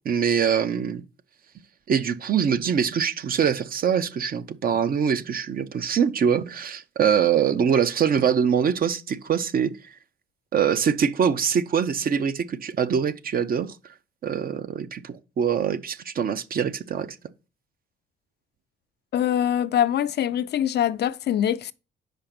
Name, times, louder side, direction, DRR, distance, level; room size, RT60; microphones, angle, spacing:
voice 1, 0.0-1.0 1.9-10.0 10.5-13.9 14.2-17.2, right 7 dB, 50° right, 0.6 m, -24 dB
voice 2, 19.1-21.7, left 10 dB, 55° left, 0.4 m, -23 dB
5.2 x 4.9 x 5.9 m
cardioid pair, 90°, 20 cm